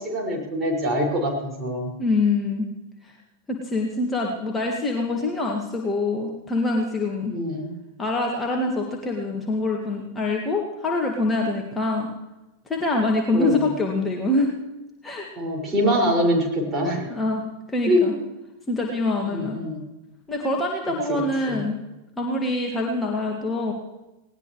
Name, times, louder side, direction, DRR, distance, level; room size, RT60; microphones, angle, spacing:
voice 1, 0.0-1.9 7.3-7.7 13.3-13.5 15.4-17.0 17.9-18.2 19.3-19.9 21.1-21.2 21.5-21.6, equal, 20° right, -1 dB, 5.8 m, -24 dB
voice 2, 2.0-2.7 3.0-3.1 3.5-7.3 8.0-12.1 12.7-14.5 15.0-15.3 17.1-17.4 17.7-18.1 18.7-19.6 20.3-21.8 22.2-23.7, left 2 dB, 15° left, 0 dB, 2.0 m, -25 dB
19.5 x 18.5 x 3.2 m, 1.0 s
figure-of-eight pair, 90°, 0 cm